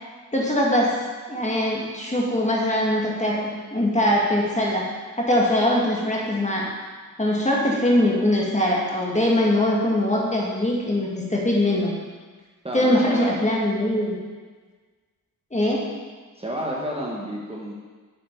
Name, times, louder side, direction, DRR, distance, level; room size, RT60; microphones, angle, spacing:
voice 1, 0.3-0.9 1.3-4.9 5.2-6.7 7.2-11.9 12.7-14.2 15.5-15.9, left 1 dB, 20° left, -3 dB, 2.0 m, -22 dB
voice 2, 12.6-13.4 16.4-17.7, equal, 15° right, -4 dB, 1.5 m, -30 dB
8.0 x 7.1 x 4.7 m, 1.4 s
cardioid pair, 80°, 36 cm